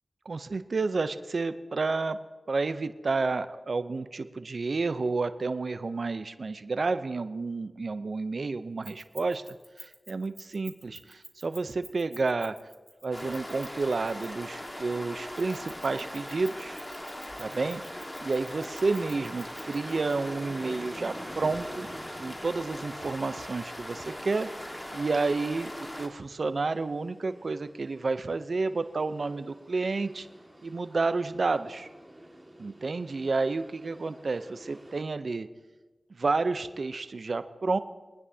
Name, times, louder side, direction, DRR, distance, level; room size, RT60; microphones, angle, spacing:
voice 1, 0.3-2.2 2.5-9.4 9.8-12.6 13.0-16.8 17.4-21.9 22.2-30.3 30.6-31.9 32.6-35.5 36.1-37.8, right 3 dB, 65° right, 11 dB, 0.6 m, -30 dB
Keys jangling, 8.8-14.5 15.4-20.1, equal, ahead, 1.6 m, -50 dB
sound 1, 13.1-26.1, left 1 dB, 25° left, 1.6 m, -40 dB
sound 2, 18.6-35.0, right 1 dB, 15° right, 1.9 m, -49 dB
23.0 x 9.7 x 2.8 m, 1.2 s
cardioid pair, 45°, 0 cm